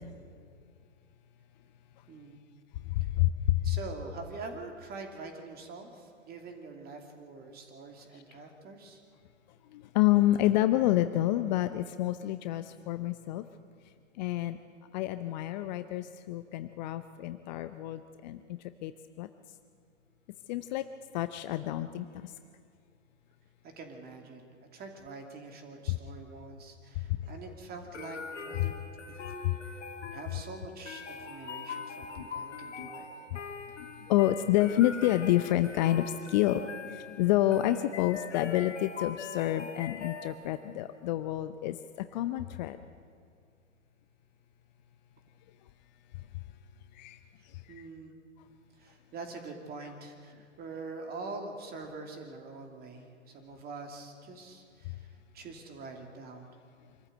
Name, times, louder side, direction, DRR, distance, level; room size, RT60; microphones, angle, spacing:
voice 1, 2.1-2.4 3.6-9.0 23.6-28.8 29.7-29.8 30.1-33.1 47.7-48.1 48.8-55.1 55.3-56.5, right 3 dB, 25° right, 4 dB, 2.8 m, -44 dB
voice 2, 2.9-3.7 9.7-13.4 14.2-14.6 14.9-19.3 20.5-20.8 21.1-22.3 25.9-26.0 27.2-27.3 28.6-28.7 29.4-29.6 32.2-32.3 32.8-33.0 33.3-33.4 33.8-41.8 42.1-42.8 46.9-47.2 47.4-47.6, left 14 dB, 35° left, 11 dB, 0.7 m, -29 dB
sound 1, 27.9-40.7, left 5 dB, 60° left, 2.8 m, -42 dB
25.5 x 14.0 x 7.9 m, 2.3 s
figure-of-eight pair, 110°, 38 cm